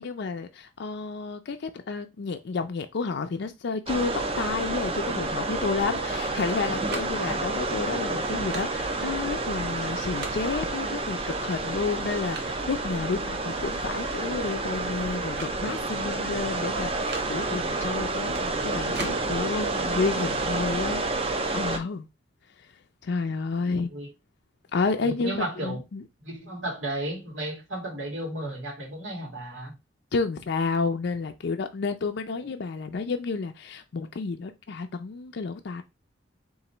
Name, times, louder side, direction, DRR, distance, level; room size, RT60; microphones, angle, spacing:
voice 1, 0.0-21.3 21.5-22.1 23.0-23.9 24.7-26.0 30.1-35.8, left 4 dB, 60° left, 0.4 m, -30 dB
sound 1, 3.9-21.8, right 2 dB, 30° right, 0.5 m, -29 dB
sound 2, 6.0-6.6 6.8-7.1 8.3-8.7 10.0-10.4 11.5-11.6 12.0-12.7 14.0-14.2 14.5-15.0 15.3-15.6 15.8-15.9 16.9-17.3 18.4-19.2 20.0-20.3, right 4 dB, 60° right, 0.9 m, -41 dB
voice 2, 23.7-24.1 25.0-25.8 26.2-29.7 32.4-32.5, right 1 dB, 80° right, 1.8 m, -34 dB
3.9 x 2.6 x 4.2 m
head